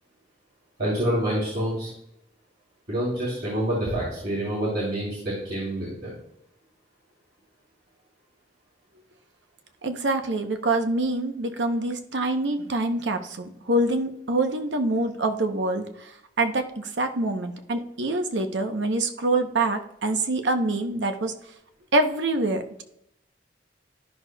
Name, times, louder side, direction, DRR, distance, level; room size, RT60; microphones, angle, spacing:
voice 1, 0.8-1.9 2.9-6.1, right 1 dB, 65° right, -6 dB, 2.9 m, -27 dB
voice 2, 9.8-21.3 21.9-22.8, right 2 dB, 85° right, 7 dB, 0.8 m, -25 dB
12.0 x 6.1 x 2.2 m, 0.75 s
head